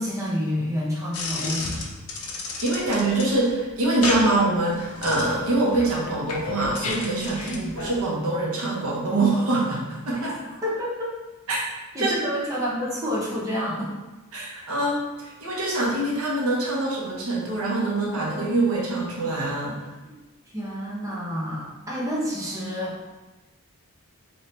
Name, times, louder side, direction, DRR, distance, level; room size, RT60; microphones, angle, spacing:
voice 1, 0.0-1.9 7.5-7.7 10.2-10.4 10.6-11.1 11.9-13.9 20.0-20.1 20.5-23.0, equal, 15° right, -7 dB, 0.8 m, -29 dB
sound 1, 1.1-7.9, left 3 dB, 75° left, 0.7 m, -33 dB
voice 2, 2.6-10.3 11.5-11.6 12.0-12.1 14.3-19.9, right 2 dB, 70° right, -4 dB, 1.0 m, -24 dB
3.2 x 2.7 x 4.3 m, 1.1 s
head